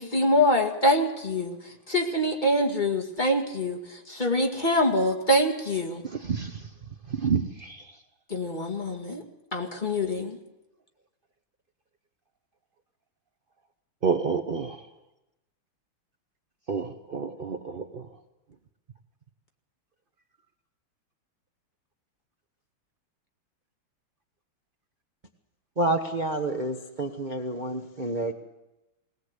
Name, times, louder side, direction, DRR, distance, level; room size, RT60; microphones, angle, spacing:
voice 1, 0.0-6.0 8.3-9.2 9.5-10.4, left 1 dB, 20° left, 2 dB, 2.0 m, -25 dB
voice 2, 7.1-7.8 14.0-14.8 16.7-18.0, right 6 dB, 85° right, 7 dB, 0.4 m, -28 dB
voice 3, 25.8-28.3, right 2 dB, 30° right, 3 dB, 0.9 m, -29 dB
19.5 x 19.0 x 8.1 m, 0.96 s
omnidirectional pair, 2.3 m